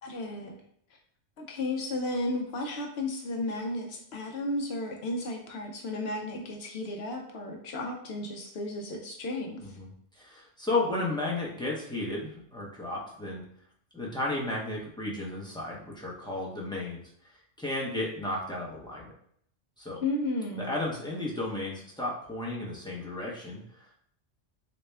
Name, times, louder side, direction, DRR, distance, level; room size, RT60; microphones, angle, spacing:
voice 1, 0.0-0.6 1.4-9.8 20.0-20.7, left 2 dB, 65° left, 2 dB, 0.8 m, -33 dB
voice 2, 9.6-9.9 10.2-13.4 13.9-17.0 17.6-19.1 19.8-20.0 20.6-23.9, left 2 dB, 5° left, -5 dB, 0.6 m, -33 dB
4.0 x 2.2 x 3.3 m, 0.68 s
omnidirectional pair, 1.2 m